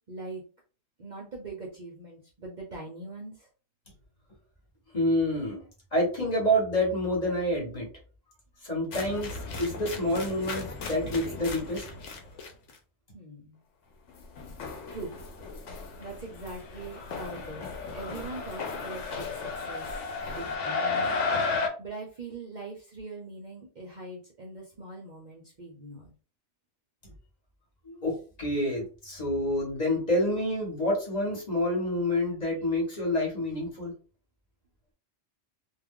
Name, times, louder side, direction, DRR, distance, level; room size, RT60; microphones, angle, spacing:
voice 1, 0.1-0.4 1.0-3.5 13.1-13.6 14.9-15.2 16.0-17.7 17.9-19.9 20.3-21.2 21.8-26.1, right 3 dB, 50° right, -1 dB, 0.6 m, -42 dB
voice 2, 4.9-5.6 5.9-7.9 8.6-9.3 9.6-11.8 27.8-28.1 28.4-33.9, left 1 dB, 35° left, -2 dB, 1.2 m, -28 dB
sound 1, 8.9-12.7 14.1-21.7, left 4 dB, 85° left, 1.0 m, -34 dB
2.3 x 2.2 x 3.6 m, 0.37 s
omnidirectional pair, 1.2 m